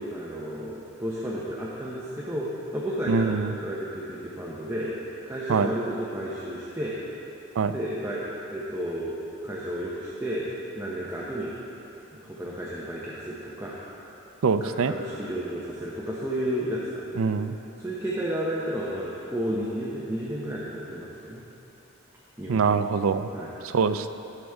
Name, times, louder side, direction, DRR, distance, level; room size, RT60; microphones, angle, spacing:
voice 1, 0.0-4.9 5.3-7.0 7.7-9.2 9.4-10.5 10.7-11.5 12.1-13.8 14.6-17.3 17.8-21.4 22.4-22.8 23.3-23.5, equal, 15° right, -6 dB, 0.9 m, -32 dB
voice 2, 3.1-3.5 5.5-5.7 7.6-7.7 14.4-14.9 17.2-17.5 22.5-23.3 23.6-24.1, right 5 dB, 90° right, 11 dB, 0.4 m, -24 dB
17.5 x 6.1 x 3.6 m, 3.0 s
head